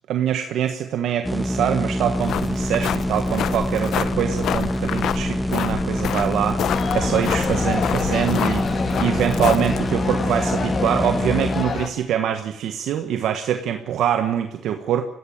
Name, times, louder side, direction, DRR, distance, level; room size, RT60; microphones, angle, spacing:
voice 1, 0.1-15.0, right 9 dB, 80° right, 6 dB, 1.4 m, -24 dB
sound 1, 1.2-11.7, equal, ahead, 1.7 m, -25 dB
sound 2, 2.1-10.0, left 10 dB, 75° left, 0.8 m, -29 dB
sound 3, 6.7-11.9, left 5 dB, 50° left, 2.5 m, -27 dB
24.0 x 15.5 x 8.9 m, 0.76 s
cardioid pair, 90°, 0 cm